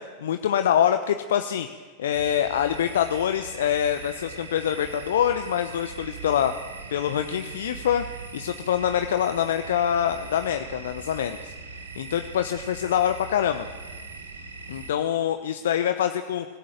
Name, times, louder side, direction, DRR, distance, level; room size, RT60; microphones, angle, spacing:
voice 1, 0.0-1.7 2.0-6.5 6.9-8.0 8.3-11.5 12.0-13.7 14.7-16.5, left 10 dB, 60° left, 8 dB, 1.0 m, -25 dB
sound 1, 2.1-14.9, right 4 dB, 70° right, 2.9 m, -40 dB
25.5 x 15.5 x 9.1 m, 1.5 s
figure-of-eight pair, 90°, 0 cm